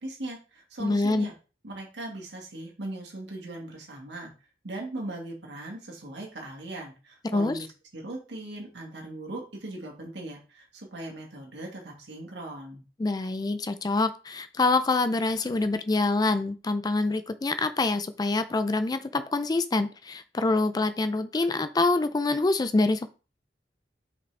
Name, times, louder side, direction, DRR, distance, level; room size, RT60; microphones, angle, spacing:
voice 1, 0.0-1.3 1.6-4.3 4.6-7.7 7.9-12.8, right 2 dB, 75° right, -1 dB, 1.8 m, -39 dB
voice 2, 0.8-1.3 7.3-7.6 13.0-23.1, left 3 dB, 25° left, 11 dB, 0.4 m, -26 dB
5.5 x 5.1 x 3.3 m, 0.34 s
head